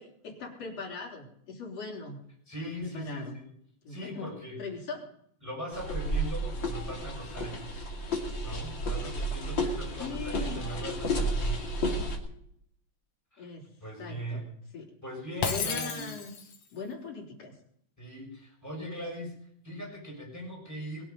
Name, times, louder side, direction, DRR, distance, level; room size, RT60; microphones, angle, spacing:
voice 1, 0.0-2.2 2.6-3.4 3.8-4.3 4.6-5.1 10.0-10.6 13.4-13.7 14.0-14.4 14.7-14.9 15.5-16.3 16.7-17.5, left 4 dB, 55° left, -1 dB, 4.6 m, -40 dB
voice 2, 2.5-3.5 3.9-4.6 5.4-11.7 13.3-13.5 13.8-14.5 15.0-16.1 18.0-19.4 19.6-21.1, right 1 dB, 5° left, -1 dB, 5.9 m, -40 dB
sound 1, 5.7-12.2, equal, 40° left, 3.2 m, -32 dB
Shatter, 15.4-16.6, left 7 dB, 85° left, 3.0 m, -32 dB
21.5 x 10.5 x 5.4 m, 0.70 s
omnidirectional pair, 3.3 m